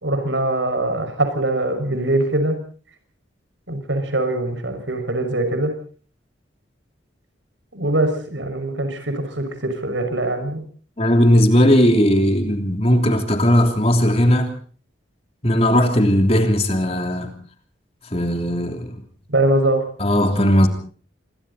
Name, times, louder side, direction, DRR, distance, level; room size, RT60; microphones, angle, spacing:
voice 1, 0.0-2.6 3.7-5.7 7.7-10.6 19.3-19.9, right 1 dB, 80° right, 6.0 m, -22 dB
voice 2, 11.0-14.5 15.4-17.3 18.1-19.0 20.0-20.7, equal, 30° left, 3.2 m, -17 dB
27.0 x 22.5 x 4.2 m
head